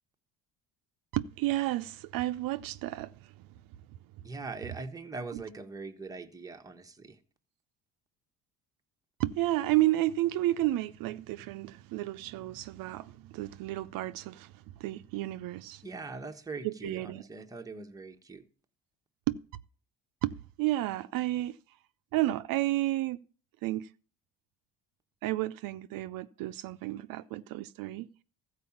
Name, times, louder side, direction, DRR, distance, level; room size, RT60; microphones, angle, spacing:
voice 1, 1.1-3.1 4.6-4.8 5.3-5.4 9.2-14.5 14.8-15.8 16.6-17.3 19.3-19.4 20.2-21.6 22.1-23.2 23.6-23.9 25.2-28.1, right 16 dB, 75° right, 0.6 m, -31 dB
voice 2, 4.2-7.2 15.8-18.4, right 3 dB, 10° right, 0.9 m, -41 dB
14.0 x 4.8 x 7.1 m
cardioid pair, 130°, 34 cm